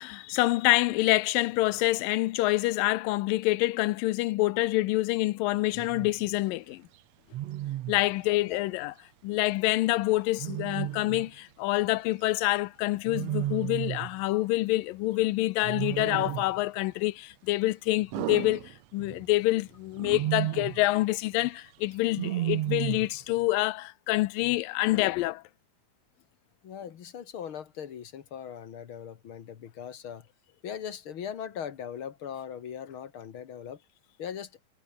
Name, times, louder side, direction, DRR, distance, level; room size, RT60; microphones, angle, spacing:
voice 1, 0.0-6.8 7.9-8.9 9.2-25.4, left 18 dB, 85° left, 2.3 m, -27 dB
Wild animals, 5.7-6.1 7.3-8.0 10.4-11.3 13.1-14.1 15.6-16.6 18.1-19.2 20.0-20.8 22.1-23.2, right 14 dB, 70° right, 1.7 m, -33 dB
voice 2, 8.3-8.6 26.6-30.2 30.6-33.8 34.2-34.5, left 8 dB, 50° left, 1.7 m, -39 dB
omnidirectional pair, 4.0 m